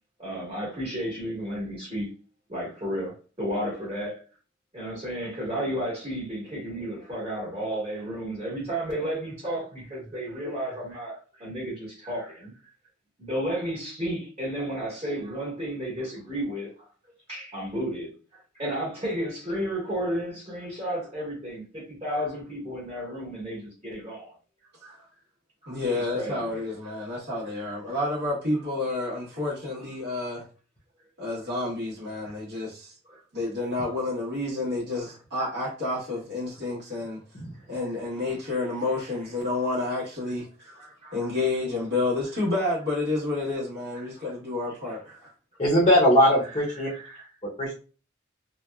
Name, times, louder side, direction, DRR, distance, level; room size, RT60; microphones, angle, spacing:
voice 1, 0.2-2.1 2.5-4.2 4.7-12.5 13.2-16.9 17.3-24.3 24.8-25.1 25.6-26.6 26.8-27.2 27.5-27.7 28.9-29.0 32.2-32.4 33.0-33.2 38.5-38.6 40.7-41.3 43.9-44.3 44.8-45.2 46.7-47.3, equal, 30° right, 1.3 m, -33 dB
voice 2, 25.7-30.4 31.2-32.9 33.3-37.2 37.7-40.7 41.1-45.3, left 2 dB, 60° right, 1.1 m, -29 dB
voice 3, 45.6-46.9 47.6-47.7, equal, 30° left, 0.7 m, -20 dB
2.8 x 2.2 x 2.2 m
head